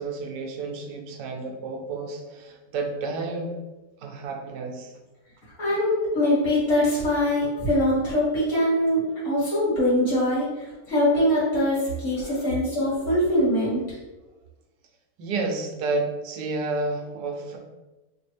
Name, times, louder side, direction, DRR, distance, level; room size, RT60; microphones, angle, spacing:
voice 1, 0.0-3.6 4.0-4.9 12.2-12.5 15.2-17.6, right 3 dB, 85° right, 3 dB, 1.2 m, -31 dB
voice 2, 5.6-13.8, left 1 dB, 45° left, -9 dB, 1.9 m, -23 dB
3.1 x 2.9 x 3.2 m, 1.1 s
omnidirectional pair, 1.8 m